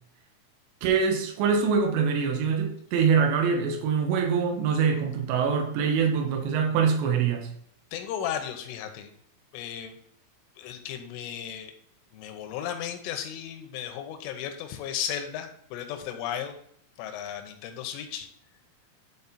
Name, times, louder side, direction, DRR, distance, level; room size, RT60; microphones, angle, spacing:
voice 1, 0.8-7.5, right 6 dB, 75° right, 2 dB, 3.4 m, -24 dB
voice 2, 7.9-9.1 9.5-9.9 10.6-11.7 12.1-16.5 17.0-18.3, left 9 dB, 90° left, 7 dB, 3.4 m, -35 dB
11.0 x 4.3 x 4.2 m, 0.66 s
omnidirectional pair, 5.5 m